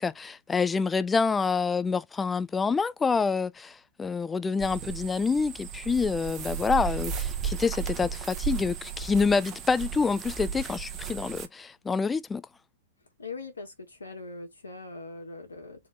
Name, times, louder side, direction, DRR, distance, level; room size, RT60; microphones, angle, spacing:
voice 1, 0.0-12.4, left 5 dB, 15° left, 0.4 m, -27 dB
sound 1, 4.6-11.5, right 7 dB, 30° right, 1.2 m, -35 dB
voice 2, 13.2-15.9, left 3 dB, 85° left, 2.0 m, -41 dB
4.3 x 3.3 x 3.5 m
hypercardioid pair, 105°, 0 cm